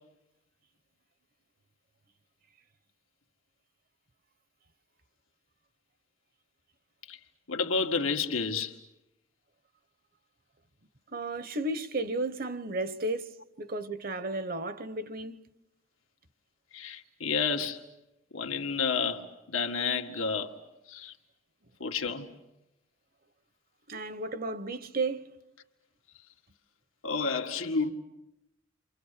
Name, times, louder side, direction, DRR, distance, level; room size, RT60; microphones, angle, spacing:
voice 1, 7.5-8.7 16.7-17.8 18.3-20.5 20.9-21.1 21.8-22.3 27.0-27.9, left 5 dB, 85° left, 1.9 m, -30 dB
voice 2, 11.1-15.4 23.9-25.3, right 2 dB, 45° right, 1.1 m, -33 dB
30.0 x 26.0 x 6.8 m
head